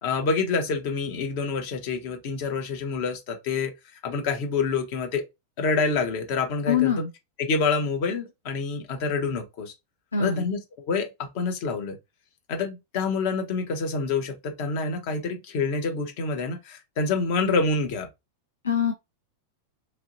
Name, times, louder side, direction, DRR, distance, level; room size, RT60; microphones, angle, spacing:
voice 1, 0.0-3.7 4.0-5.2 5.6-6.9 7.4-9.7 10.2-10.6 10.9-12.0 12.5-18.1, left 4 dB, 45° left, 0.8 m, -27 dB
voice 2, 6.7-7.1 10.1-10.5 18.6-18.9, left 7 dB, 75° left, 0.4 m, -23 dB
2.9 x 2.7 x 2.6 m
figure-of-eight pair, 90°, 0 cm